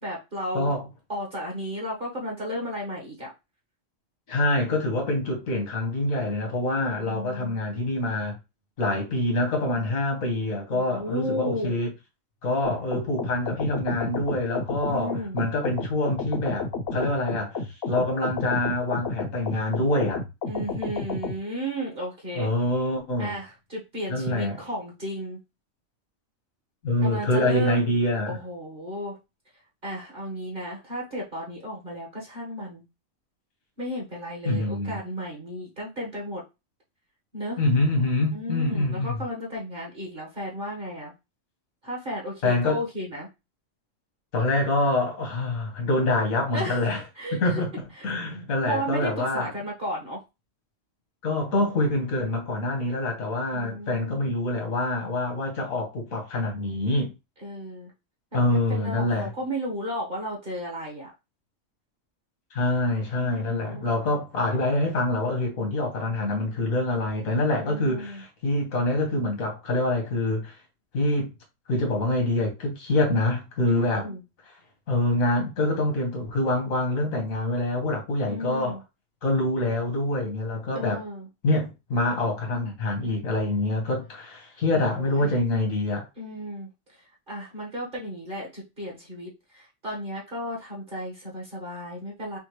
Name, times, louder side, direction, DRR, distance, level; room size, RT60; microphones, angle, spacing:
voice 1, 0.0-0.7 1.1-3.3 7.0-7.5 10.7-11.8 14.9-15.4 20.5-22.5 23.2-25.4 27.0-27.9 28.3-29.2 29.8-32.8 33.8-36.4 37.3-37.6 38.3-41.1 41.8-43.3 46.5-46.8 47.1-47.6 48.0-48.1 48.6-50.2 53.5-54.3 57.4-57.9 58.4-61.1 63.2-63.9 67.6-68.2 73.7-74.2 78.3-78.8 80.7-81.3 84.7-85.4 86.2-92.4, equal, 40° right, 1.6 m, -34 dB
voice 2, 4.3-8.4 8.8-11.9 12.4-17.6 17.9-20.2 22.4-23.3 24.1-24.5 26.8-28.4 34.5-35.0 37.6-39.2 42.4-42.8 44.3-47.0 47.3-47.7 48.0-49.5 51.2-57.1 58.3-59.3 62.5-70.6 70.9-71.3 71.7-74.1 74.9-78.8 79.2-81.0 81.4-86.1, left 2 dB, 90° left, 1.9 m, -25 dB
sound 1, 12.6-21.4, left 3 dB, 55° left, 0.9 m, -31 dB
5.6 x 2.5 x 3.1 m
omnidirectional pair, 1.4 m